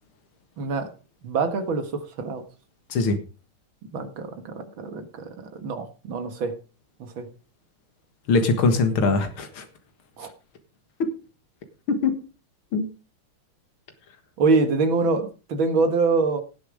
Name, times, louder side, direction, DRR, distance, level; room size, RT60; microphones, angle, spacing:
voice 1, 0.6-0.9 1.2-2.4 3.9-6.6 7.0-7.3 10.2-10.3 14.4-16.4, right 4 dB, 70° right, 2.3 m, -25 dB
voice 2, 8.3-9.6 11.0-11.1 11.9-12.2 12.7-12.9, left 4 dB, 85° left, 2.4 m, -21 dB
18.0 x 6.8 x 5.0 m
omnidirectional pair, 2.3 m